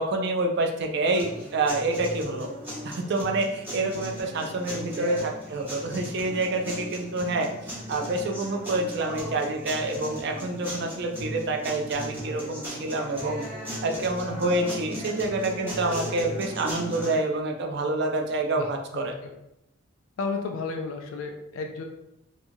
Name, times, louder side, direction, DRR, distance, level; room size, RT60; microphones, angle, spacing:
voice 1, 0.0-2.5 2.8-7.5 7.9-13.4 13.8-19.1, right 2 dB, 55° right, 3 dB, 0.4 m, -27 dB
sound 1, 1.1-17.2, equal, 10° right, 0.9 m, -37 dB
voice 2, 18.6-19.3 20.2-21.8, left 4 dB, 75° left, 3 dB, 0.3 m, -33 dB
2.9 x 2.3 x 2.6 m, 0.84 s
head